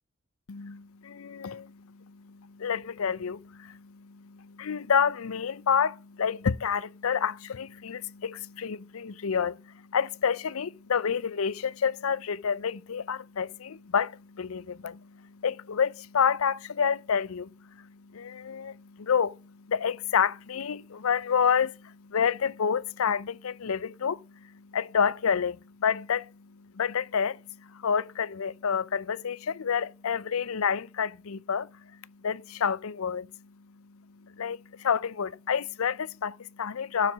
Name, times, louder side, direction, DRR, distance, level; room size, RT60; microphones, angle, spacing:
voice 1, 0.5-37.1, left 7 dB, 80° left, 0.5 m, -29 dB
11.5 x 7.5 x 5.0 m
head